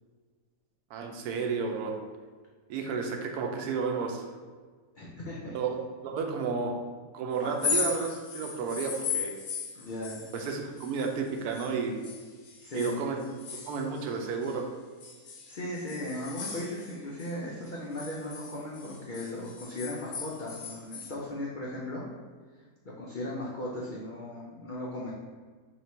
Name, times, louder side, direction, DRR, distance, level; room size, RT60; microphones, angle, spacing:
voice 1, 0.9-2.0 2.7-4.3 5.5-6.8 7.1-9.3 10.3-12.0 12.7-13.2 13.7-14.7, right 5 dB, 90° right, 3 dB, 1.1 m, -32 dB
voice 2, 5.0-5.5 7.4-7.5 9.7-10.2 12.6-13.0 15.5-22.0 22.8-25.1, left 1 dB, 75° left, -4 dB, 0.4 m, -37 dB
sound 1, 7.5-11.7 12.0-14.6 15.0-17.3 17.7-21.2, left 6 dB, 60° left, 0.9 m, -37 dB
3.1 x 2.8 x 4.3 m, 1.5 s
omnidirectional pair, 1.6 m